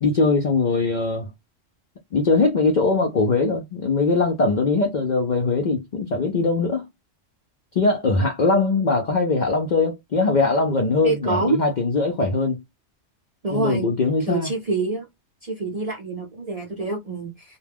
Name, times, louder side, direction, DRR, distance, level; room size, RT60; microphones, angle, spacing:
voice 1, 0.0-1.3 2.1-6.9 7.8-12.6 13.5-14.5, left 3 dB, 60° left, 0.4 m, -21 dB
voice 2, 11.0-11.6 13.4-13.9 14.3-15.1 15.4-17.6, right 3 dB, 50° right, 0.4 m, -26 dB
2.2 x 2.1 x 3.3 m
omnidirectional pair, 1.3 m